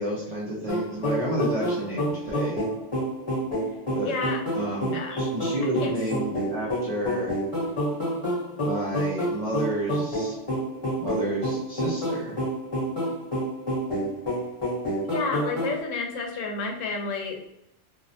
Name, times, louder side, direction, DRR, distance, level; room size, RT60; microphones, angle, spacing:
voice 1, 0.0-2.7 3.9-4.1 4.5-7.3 8.6-10.4 11.0-12.4, right 1 dB, 55° right, -7 dB, 0.4 m, -30 dB
sound 1, 0.7-15.8, equal, 30° left, 0.9 m, -28 dB
voice 2, 4.1-4.4 4.9-5.2 5.8-5.9 15.0-17.4, left 4 dB, 80° left, 2 dB, 0.9 m, -30 dB
2.4 x 2.0 x 2.7 m, 0.77 s
omnidirectional pair, 1.3 m